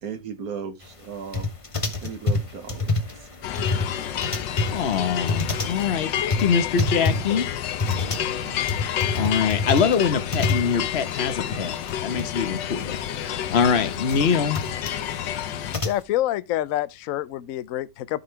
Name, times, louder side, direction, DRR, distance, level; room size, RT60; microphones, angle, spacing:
voice 1, 0.0-1.5 2.0-3.3 7.9-8.3 8.7-9.0, right 6 dB, 55° right, 1.6 m, -37 dB
sound 1, 1.3-11.1 11.4-11.5 11.7-12.3 12.6-16.0, left 3 dB, 25° left, 0.8 m, -27 dB
sound 2, 3.4-15.8, left 10 dB, 85° left, 1.5 m, -30 dB
voice 2, 4.7-7.5 8.8-14.6, left 6 dB, 40° left, 1.2 m, -24 dB
sound 3, 7.9-12.5, right 3 dB, 30° right, 1.5 m, -48 dB
voice 3, 15.8-18.2, left 14 dB, 65° left, 0.8 m, -27 dB
12.5 x 5.5 x 3.3 m
omnidirectional pair, 1.9 m